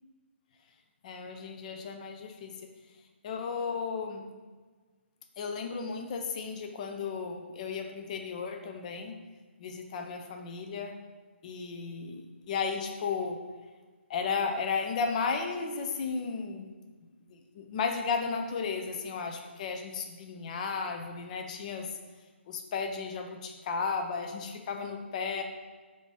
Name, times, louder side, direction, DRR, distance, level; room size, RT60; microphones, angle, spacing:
voice 1, 1.0-2.5 3.2-4.3 5.4-9.2 9.6-11.0 11.4-13.4 14.1-16.7 17.3-21.9 22.5-25.4, left 5 dB, 35° left, 4 dB, 0.4 m, -34 dB
4.9 x 2.6 x 3.4 m, 1.4 s
hypercardioid pair, 150°, 7 cm